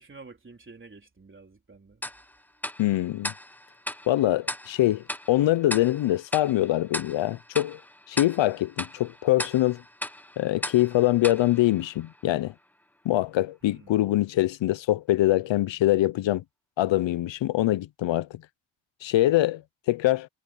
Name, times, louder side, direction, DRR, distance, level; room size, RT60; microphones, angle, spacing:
voice 1, 0.0-2.1 13.6-14.0, right 3 dB, 25° right, 3.8 m, -49 dB
Tick-tock, 2.0-12.5, left 1 dB, 5° left, 0.8 m, -38 dB
voice 2, 2.8-3.3 4.1-7.8 8.1-9.8 10.4-12.5 13.0-16.4 16.8-18.4 19.0-19.6 19.9-20.3, left 15 dB, 85° left, 0.7 m, -24 dB
wide cardioid pair, 115°, 44 cm